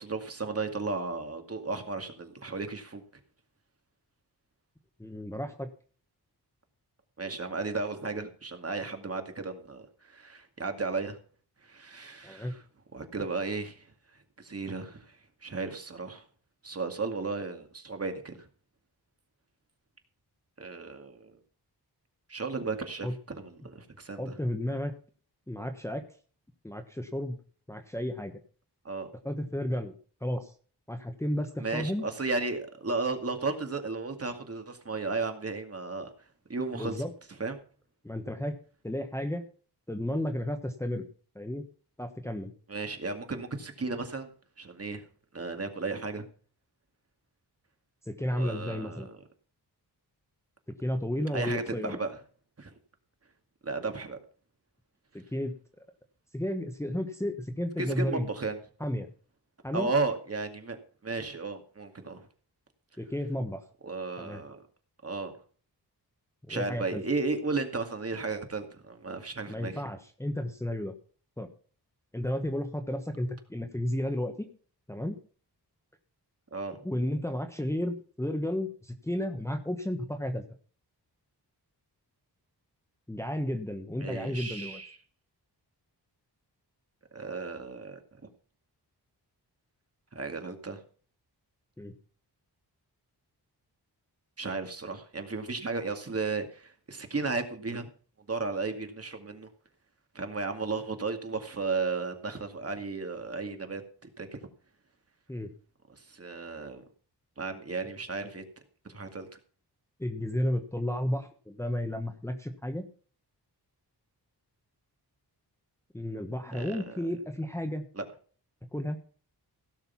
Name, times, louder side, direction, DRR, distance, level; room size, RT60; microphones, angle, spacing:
voice 1, 0.0-3.0 7.2-11.2 11.6-12.6 12.9-13.9 14.4-16.2 16.6-18.5 20.6-21.3 22.3-24.3 28.8-29.1 31.6-36.1 36.5-37.1 37.4-37.6 42.7-44.3 44.6-45.0 45.3-46.2 48.3-49.2 51.3-52.1 52.6-52.7 53.6-54.2 57.8-58.6 59.7-62.2 63.8-64.6 65.0-65.4 66.5-69.8 76.5-76.8 84.0-85.0 87.1-88.0 90.1-90.8 94.4-97.9 98.3-99.5 100.1-103.8 104.2-104.4 105.9-106.8 107.4-108.4 108.9-109.3 116.5-117.0 117.9-118.0, right 3 dB, 35° right, 6 dB, 2.2 m, -34 dB
voice 2, 5.0-5.7 12.2-12.5 23.0-23.1 24.2-24.9 25.5-26.0 26.6-27.4 27.7-28.3 29.2-29.9 30.2-30.5 30.9-32.1 36.7-37.1 38.0-38.5 38.8-39.4 39.9-41.1 41.3-41.6 42.0-42.5 48.1-49.1 50.8-52.0 55.1-55.5 56.3-58.3 58.8-59.1 59.6-59.9 63.0-63.6 64.2-64.4 66.5-67.0 69.5-70.9 71.4-71.5 72.1-74.5 74.9-75.2 76.8-80.4 83.1-84.8 91.8-91.9 105.3-105.5 110.0-112.9 115.9-117.8 118.7-119.0, left 1 dB, 5° left, 5 dB, 1.2 m, -32 dB
16.5 x 6.7 x 5.8 m, 0.41 s
wide cardioid pair, 120°, 40 cm